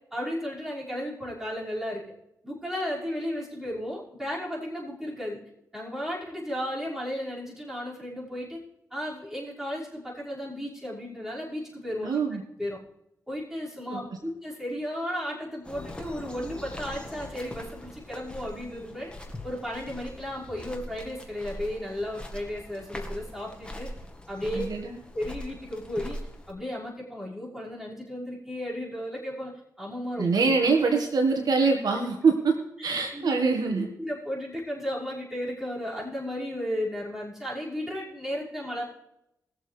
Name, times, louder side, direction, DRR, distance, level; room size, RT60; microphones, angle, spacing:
voice 1, 0.1-2.0 2.4-5.4 5.7-8.6 8.9-12.2 12.6-12.8 13.3-19.1 19.4-23.9 24.3-24.7 25.1-26.2 26.5-30.3 32.8-33.4 33.7-38.8, equal, 5° right, -7 dB, 5.7 m, -34 dB
voice 2, 12.0-12.4 13.9-14.0 24.5-25.0 30.2-32.5 32.8-33.9, right 4 dB, 75° right, 3 dB, 1.7 m, -24 dB
sound 1, 15.6-26.5, left 1 dB, 15° left, 1.9 m, -41 dB
20.5 x 7.5 x 3.4 m, 0.82 s
cardioid pair, 60°, 7 cm